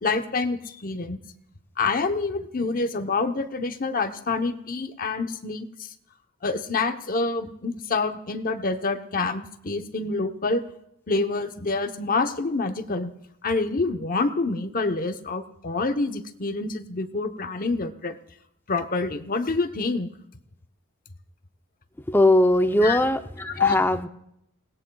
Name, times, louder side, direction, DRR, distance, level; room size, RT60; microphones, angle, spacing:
voice 1, 0.0-1.2 1.8-5.9 6.4-10.6 11.1-13.1 13.4-18.2 18.7-20.1 22.8-23.0 23.6-23.8, left 3 dB, 40° left, 7 dB, 0.9 m, -27 dB
voice 2, 22.1-24.1, left 1 dB, 10° left, 8 dB, 0.6 m, -20 dB
28.5 x 17.5 x 2.3 m, 0.76 s
head